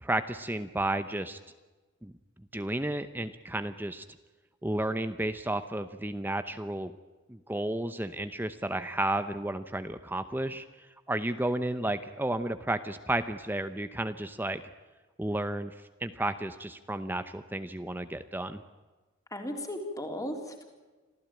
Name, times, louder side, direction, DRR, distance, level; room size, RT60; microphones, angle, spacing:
voice 1, 0.0-1.4 2.0-2.1 2.5-4.0 4.6-6.9 7.3-10.6 11.1-14.6 15.2-15.7 16.0-18.6, right 1 dB, 10° right, 10 dB, 0.7 m, -32 dB
voice 2, 19.3-20.6, left 1 dB, 15° left, 4 dB, 3.6 m, -36 dB
26.5 x 15.5 x 8.9 m, 1.3 s
head